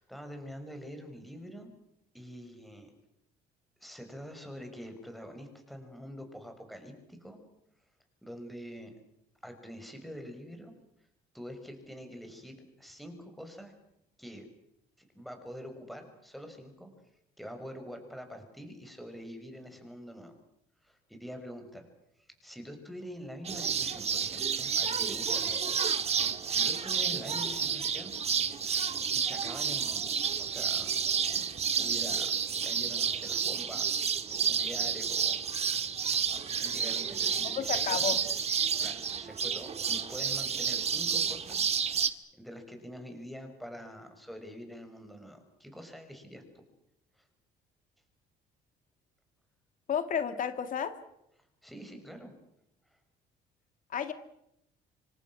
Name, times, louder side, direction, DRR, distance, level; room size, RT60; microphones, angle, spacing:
voice 1, 0.0-1.7 2.1-2.9 3.8-7.4 8.2-8.9 9.4-10.7 11.3-13.7 14.2-14.5 15.1-16.9 17.4-20.3 20.8-21.9 22.2-28.2 28.6-28.7 29.1-30.1 30.4-30.9 31.3-31.4 31.7-32.3 32.6-33.9 34.4-35.4 36.6-38.1 38.8-42.1 42.4-46.4 47.2-47.3 51.6-52.3 52.9-53.0, equal, ahead, 5 dB, 6.3 m, -45 dB
sound 1, 23.4-42.1, right 7 dB, 40° right, 1.8 m, -30 dB
voice 2, 37.4-38.2 49.9-50.9 53.9-54.1, left 8 dB, 50° left, 9 dB, 2.5 m, -31 dB
27.0 x 25.5 x 6.5 m, 0.80 s
cardioid pair, 110°, 17 cm